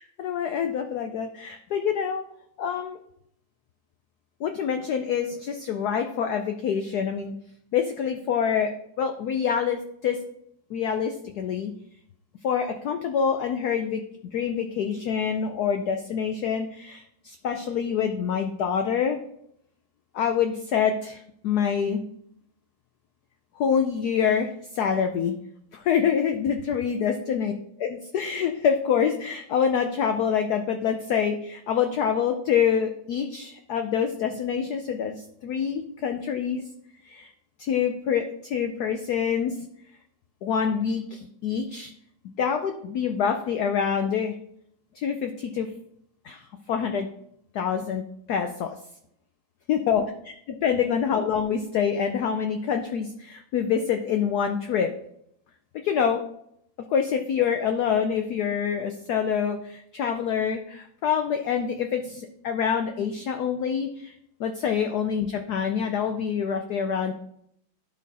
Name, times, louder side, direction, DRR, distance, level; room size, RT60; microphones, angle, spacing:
voice 1, 0.0-2.2 2.6-3.0 4.4-7.3 7.7-10.2 10.7-11.7 12.4-14.0 14.3-19.2 20.1-22.0 23.6-25.3 25.7-27.5 27.8-36.6 37.0-37.3 37.6-39.6 40.4-41.9 42.4-44.3 44.9-45.7 46.2-47.1 47.5-48.0 48.3-48.7 49.7-54.9 55.8-56.2 56.9-64.1 64.4-67.1, left 7 dB, 75° left, 6 dB, 0.9 m, -26 dB
11.5 x 4.3 x 4.1 m, 0.74 s
omnidirectional pair, 2.2 m